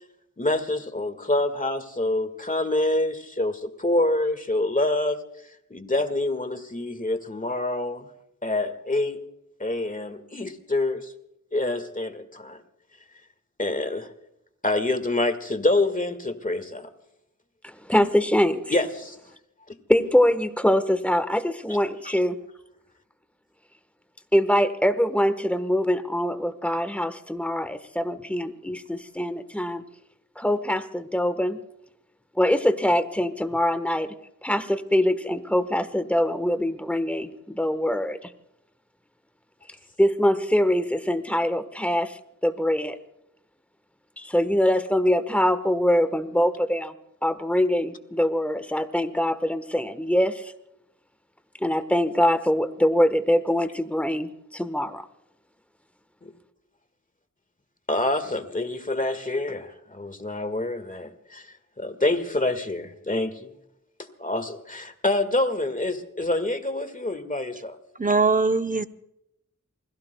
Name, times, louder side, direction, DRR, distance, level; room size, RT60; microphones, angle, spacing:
voice 1, 0.4-5.2 5.7-8.1 8.4-9.2 9.6-11.1 11.5-12.6 13.6-14.1 14.6-16.9 18.7-19.2 22.1-22.2 56.2-56.3 57.9-61.5 61.8-63.5 64.2-67.8, left 2 dB, 25° left, 8 dB, 1.8 m, -26 dB
voice 2, 17.6-18.6 19.9-22.4 24.3-29.8 30.4-31.6 32.4-34.1 34.4-38.3 40.0-43.0 44.2-46.9 47.2-50.5 51.6-55.1, equal, 5° left, 10 dB, 1.3 m, -23 dB
voice 3, 68.0-68.9, right 4 dB, 25° right, 9 dB, 0.8 m, -21 dB
28.0 x 21.5 x 2.3 m, 0.81 s
wide cardioid pair, 65°, 32 cm